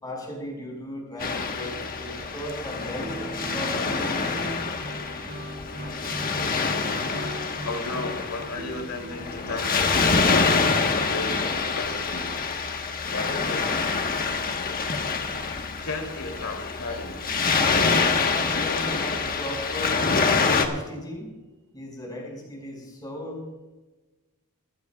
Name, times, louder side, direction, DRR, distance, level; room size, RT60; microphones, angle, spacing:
voice 1, 0.0-4.4 18.2-20.0 20.5-21.3 21.7-23.7, equal, 20° left, -1 dB, 5.3 m, -36 dB
Waves surf, 1.2-20.7, left 4 dB, 40° left, 1.3 m, -26 dB
Guitar, 2.9-10.4, equal, 55° right, 2.1 m, -38 dB
voice 2, 7.6-12.3 13.1-13.7 15.8-17.2, left 2 dB, 70° left, 3 dB, 2.9 m, -34 dB
20.5 x 14.5 x 2.3 m, 1.1 s
head